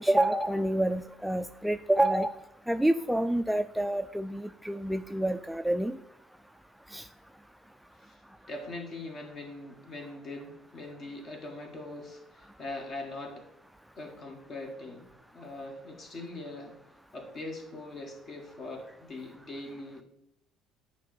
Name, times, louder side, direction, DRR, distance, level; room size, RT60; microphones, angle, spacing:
voice 1, 0.0-2.4 2.7-6.0 6.9-7.1, right 1 dB, 5° right, 10 dB, 0.3 m, -28 dB
voice 2, 8.5-13.5 14.0-15.1 15.3-16.7 17.1-20.0, left 2 dB, 45° left, 3 dB, 1.5 m, -41 dB
8.9 x 3.0 x 5.0 m, 0.82 s
hypercardioid pair, 60°, 0 cm